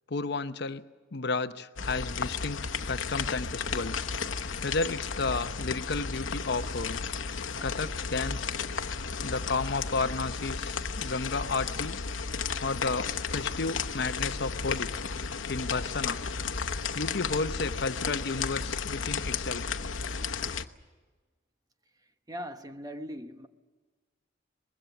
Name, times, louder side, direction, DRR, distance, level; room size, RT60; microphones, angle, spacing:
voice 1, 0.1-0.8 1.1-4.1 4.6-7.0 7.6-8.5 9.2-12.0 12.6-14.9 15.5-16.2 16.9-19.6, left 3 dB, 60° left, 0.8 m, -32 dB
sound 1, 1.8-20.6, left 5 dB, 90° left, 1.0 m, -33 dB
voice 2, 7.6-7.9 22.3-23.5, equal, 20° right, 1.1 m, -40 dB
24.5 x 21.5 x 7.1 m
head